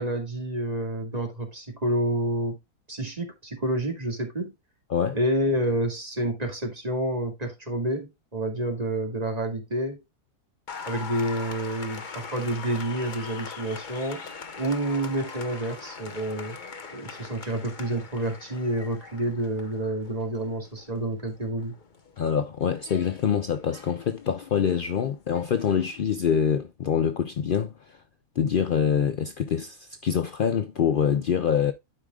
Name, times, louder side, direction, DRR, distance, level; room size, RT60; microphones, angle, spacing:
voice 1, 0.0-2.6 2.9-4.5 5.1-10.0 10.9-14.2 14.6-16.6 16.9-21.7, right 1 dB, 25° right, 2.0 m, -29 dB
Applause, 10.7-26.0, left 5 dB, 35° left, 1.0 m, -42 dB
voice 2, 22.2-28.0 28.4-31.7, left 7 dB, 75° left, 0.4 m, -25 dB
12.5 x 5.0 x 2.3 m
omnidirectional pair, 1.6 m